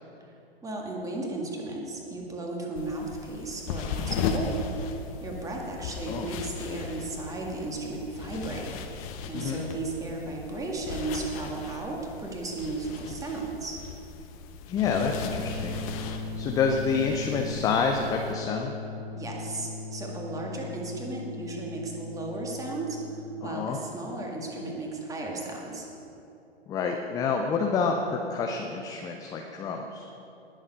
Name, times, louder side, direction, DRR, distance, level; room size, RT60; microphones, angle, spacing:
voice 1, 0.6-4.6 5.2-8.7 9.3-13.8 19.1-23.0 23.4-25.9, right 2 dB, 10° right, 0 dB, 1.9 m, -35 dB
sound 1, 2.8-18.3, left 5 dB, 35° left, 1.1 m, -37 dB
voice 2, 14.7-15.8 16.4-18.7 23.4-23.8 26.7-30.1, left 5 dB, 10° left, 2 dB, 0.5 m, -28 dB
sound 2, 14.9-23.7, left 2 dB, 70° right, 2.0 m, -38 dB
19.0 x 7.3 x 5.4 m, 2.8 s
figure-of-eight pair, 115°, 32 cm